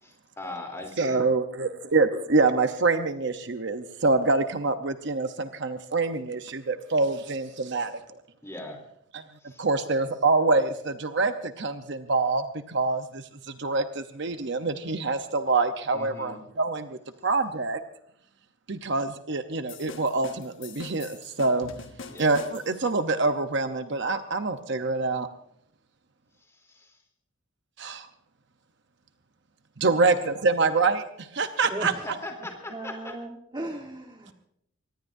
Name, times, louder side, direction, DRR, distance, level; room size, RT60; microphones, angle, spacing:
voice 1, 0.0-1.2 8.4-8.8 9.4-9.7 15.9-16.4 22.1-22.4 26.5-26.9 30.1-30.3 32.0-33.1, left 2 dB, 15° left, 2 dB, 3.3 m, -40 dB
voice 2, 1.0-7.9 9.1-9.2 9.6-17.0 17.2-17.8 18.7-21.7 22.2-25.3 27.8-28.1 29.8-31.9, right 3 dB, 55° right, 8 dB, 0.8 m, -26 dB
sound 1, 19.7-22.9, left 4 dB, 60° left, 1.5 m, -43 dB
voice 3, 31.6-34.3, right 1 dB, 20° right, 1 dB, 1.4 m, -38 dB
24.0 x 19.5 x 2.7 m, 0.70 s
head